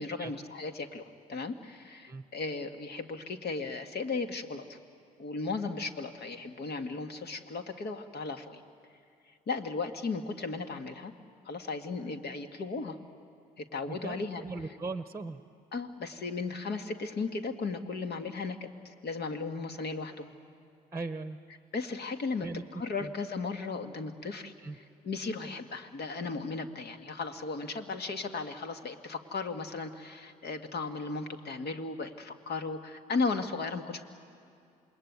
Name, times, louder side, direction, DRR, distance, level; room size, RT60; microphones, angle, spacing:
voice 1, 0.0-4.8 5.2-8.6 9.5-11.1 11.4-13.0 13.6-14.4 15.7-20.3 21.7-22.5 22.7-24.5 25.0-34.0, left 4 dB, 55° left, 7 dB, 2.1 m, -36 dB
voice 2, 13.9-15.4 20.1-20.2 20.9-21.4 22.4-23.1 24.6-24.8, right 3 dB, 15° right, 10 dB, 1.2 m, -39 dB
27.5 x 21.0 x 9.7 m, 2.4 s
hypercardioid pair, 50°, 20 cm